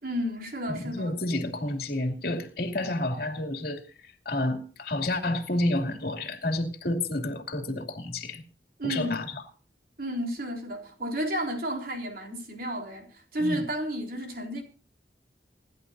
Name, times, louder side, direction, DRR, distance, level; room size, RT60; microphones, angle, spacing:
voice 1, 0.0-1.2 8.8-9.3 10.0-14.6, equal, 55° right, 3.7 m, -32 dB
voice 2, 0.7-8.4 8.8-9.3 13.4-13.6, left 1 dB, 60° left, 2.5 m, -30 dB
26.5 x 11.0 x 2.7 m
head